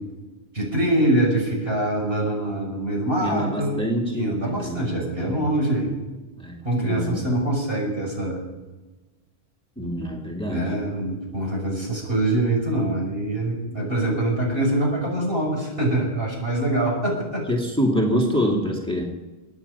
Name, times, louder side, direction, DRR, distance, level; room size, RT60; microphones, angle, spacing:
voice 1, 0.5-3.9 4.1-6.0 6.6-8.4 10.5-17.4, right 1 dB, 65° right, -2 dB, 6.0 m, -24 dB
voice 2, 3.2-5.5 6.4-7.3 9.8-10.7 17.5-19.0, equal, 5° left, -1 dB, 2.2 m, -26 dB
23.0 x 9.8 x 5.5 m, 1.2 s
omnidirectional pair, 1.1 m